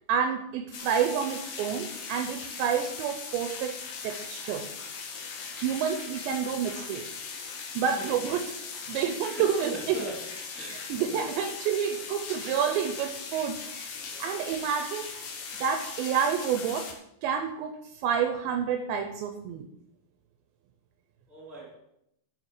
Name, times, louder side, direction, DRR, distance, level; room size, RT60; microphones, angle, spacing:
voice 1, 0.1-3.8 4.0-4.7 5.5-7.1 7.8-8.6 8.9-10.1 10.7-13.9 14.2-15.1 15.6-16.9 17.2-19.7, right 7 dB, 80° right, 7 dB, 2.7 m, -29 dB
sound 1, 0.7-16.9, left 5 dB, 60° left, 2.5 m, -39 dB
voice 2, 8.0-8.3 9.3-10.1 10.5-11.4 14.1-14.4 21.3-21.8, right 2 dB, ahead, -2 dB, 2.1 m, -40 dB
11.5 x 5.7 x 6.5 m, 0.78 s
omnidirectional pair, 5.5 m